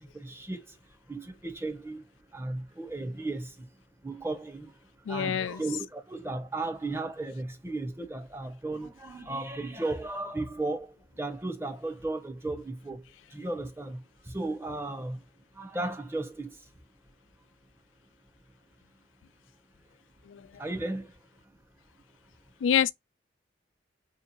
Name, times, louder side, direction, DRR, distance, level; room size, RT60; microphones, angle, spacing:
voice 1, 0.1-0.8 1.1-2.0 2.3-3.5 4.0-4.7 5.1-13.0 13.3-15.2 15.6-16.5 20.6-21.1, right 2 dB, 15° right, 0.6 m, -35 dB
voice 2, 5.0-5.6 20.2-20.6 22.6-22.9, left 8 dB, 90° left, 0.4 m, -27 dB
4.3 x 2.8 x 2.8 m
head